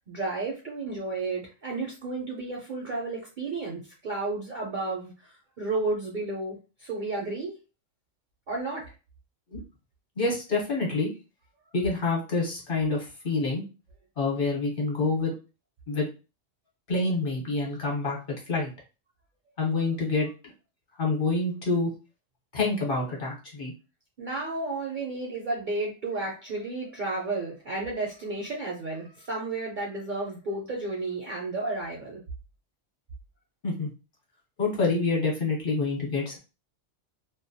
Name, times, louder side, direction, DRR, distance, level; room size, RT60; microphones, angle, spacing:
voice 1, 0.1-7.5 8.5-8.9 24.2-32.2, right 3 dB, 55° right, -2 dB, 0.5 m, -32 dB
voice 2, 10.2-11.1 11.7-13.6 14.2-15.3 15.9-16.1 16.9-18.2 18.5-18.7 19.6-20.3 21.0-21.9 22.5-23.7 33.6-33.9 34.6-36.4, left 3 dB, 50° left, -2 dB, 0.9 m, -27 dB
2.2 x 2.1 x 2.6 m, 0.31 s
omnidirectional pair, 1.3 m